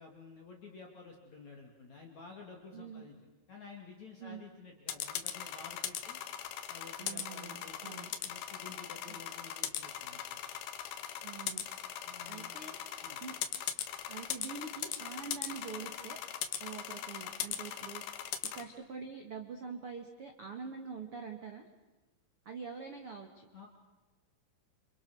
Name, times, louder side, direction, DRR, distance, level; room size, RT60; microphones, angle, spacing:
voice 1, 0.0-3.2 3.5-6.2 6.7-8.0 8.2-10.2 11.9-12.6 13.0-13.2 17.7-17.9 18.6-18.7 23.5-23.7, left 4 dB, 40° left, 1 dB, 3.4 m, -52 dB
voice 2, 2.7-3.0 4.2-4.4 7.0-8.1 9.1-9.2 11.2-11.6 12.3-12.8 13.2-13.3 14.1-16.2 16.6-18.2 18.5-21.6 22.4-23.5, right 5 dB, 50° right, 5 dB, 1.7 m, -45 dB
sound 1, 4.9-18.6, left 10 dB, 65° left, 2.9 m, -39 dB
29.5 x 28.5 x 6.4 m, 1.1 s
omnidirectional pair, 5.7 m